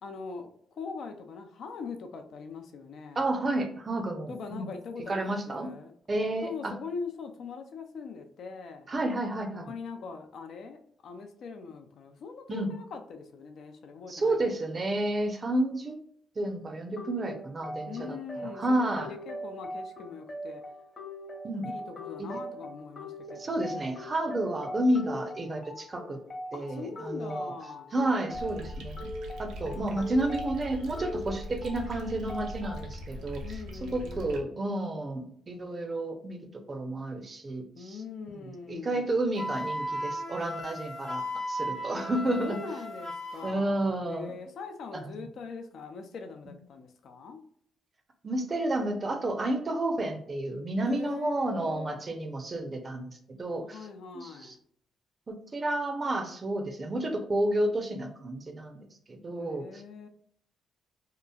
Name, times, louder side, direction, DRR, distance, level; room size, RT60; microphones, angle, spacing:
voice 1, 0.0-3.3 4.3-5.9 6.4-8.9 9.7-14.4 17.9-20.6 21.6-23.6 24.4-24.6 26.5-27.9 33.4-34.6 37.7-39.1 42.3-47.4 50.8-52.0 53.6-54.5 59.4-60.1, left 5 dB, 65° left, 6 dB, 0.4 m, -42 dB
voice 2, 3.2-4.7 5.1-5.7 6.1-6.7 8.9-9.7 12.5-12.7 14.1-16.0 16.4-18.2 18.4-19.1 21.4-21.7 22.2-22.3 23.4-26.2 26.5-27.5 27.9-29.1 29.4-36.4 36.7-38.0 38.7-42.6 43.4-44.3 44.9-45.1 48.2-53.9 54.1-54.5 55.3-59.6, right 1 dB, 35° right, 5 dB, 0.6 m, -31 dB
sound 1, 17.0-33.0, equal, 35° left, 0.9 m, -41 dB
sound 2, 28.3-34.4, left 1 dB, 75° right, 0.6 m, -41 dB
Wind instrument woodwind instrument, 39.4-43.6, equal, 85° left, 0.9 m, -35 dB
2.9 x 2.4 x 2.3 m, 0.66 s
cardioid pair, 90°, 0 cm